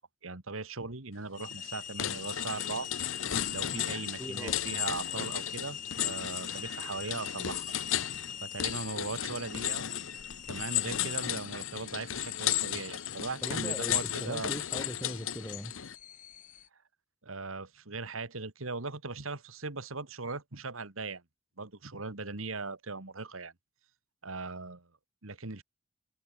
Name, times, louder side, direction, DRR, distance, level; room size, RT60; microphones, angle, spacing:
voice 1, 0.2-2.9 3.5-7.7 8.4-9.8 10.5-14.5 17.2-21.2 21.6-23.5 24.2-24.9 25.2-25.6, right 3 dB, 85° right, 2.1 m, -39 dB
sound 1, 1.3-16.7, left 8 dB, 40° left, 5.2 m, -45 dB
sound 2, 1.4-1.6 2.0-15.9, left 11 dB, 75° left, 0.8 m, -34 dB
voice 2, 4.2-4.6 13.4-15.7, equal, 10° left, 4.2 m, -40 dB
head